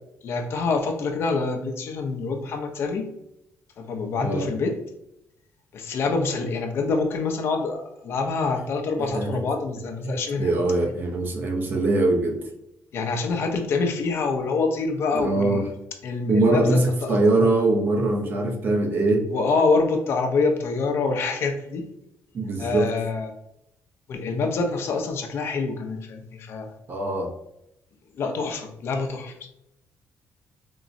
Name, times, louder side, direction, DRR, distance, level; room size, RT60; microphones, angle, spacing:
voice 1, 0.2-3.1 3.8-4.7 5.7-10.5 12.9-15.6 16.0-17.3 19.3-21.8 22.6-23.3 24.1-26.7 28.2-29.5, left 4 dB, 50° left, 4 dB, 0.4 m, -26 dB
voice 2, 9.0-9.4 10.0-12.4 15.1-15.6 16.3-19.2 22.3-22.9 26.9-27.3, right 2 dB, 40° right, 3 dB, 0.5 m, -22 dB
3.7 x 2.0 x 2.5 m, 0.82 s
cardioid pair, 155°, 5 cm